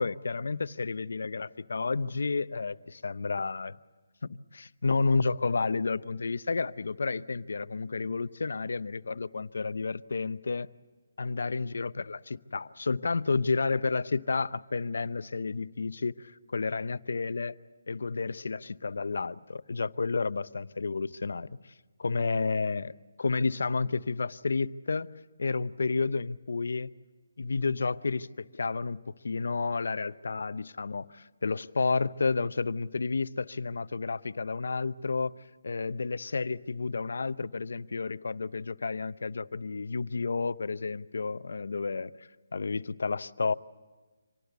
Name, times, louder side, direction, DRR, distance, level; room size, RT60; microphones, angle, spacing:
voice 1, 0.0-3.8 4.2-10.7 11.2-17.6 17.9-21.5 22.0-22.9 23.2-25.1 25.4-26.9 27.4-35.3 35.6-42.1 42.5-43.5, left 4 dB, 75° left, 15 dB, 0.7 m, -31 dB
26.0 x 18.5 x 8.1 m, 1.3 s
hypercardioid pair, 165°, 0 cm